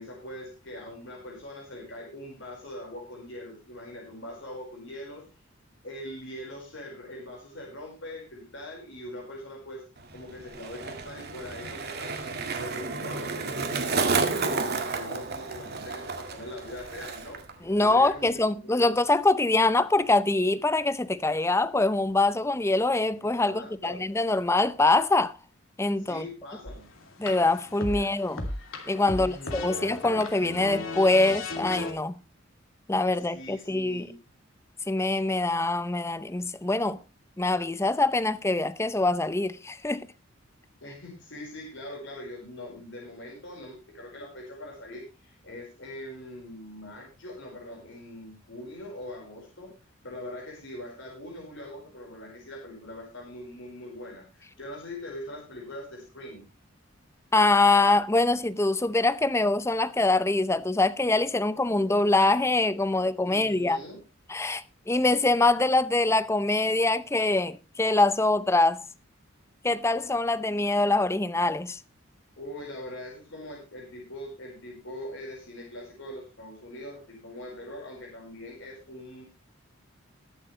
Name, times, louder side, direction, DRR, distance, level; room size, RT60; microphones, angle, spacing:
voice 1, 0.0-5.2 5.8-9.8 10.1-18.9 23.4-24.1 26.0-26.9 27.9-28.1 29.1-29.8 33.1-34.2 40.8-49.7 50.0-56.4 63.2-64.0 72.4-79.2, left 1 dB, 65° left, 4.8 m, -42 dB
Skateboard, 10.0-17.5 17.8-18.3, right 4 dB, 50° right, 2.0 m, -31 dB
voice 2, 17.7-25.4 25.8-26.3 27.2-28.4 28.9-32.1 32.9-34.1 34.9-37.0 37.4-40.1 57.3-63.8 64.3-68.9 69.6-71.8, left 2 dB, 15° left, 0.6 m, -24 dB
sound 1, 26.7-31.9, left 2 dB, 80° left, 2.8 m, -36 dB
21.0 x 7.7 x 3.2 m
head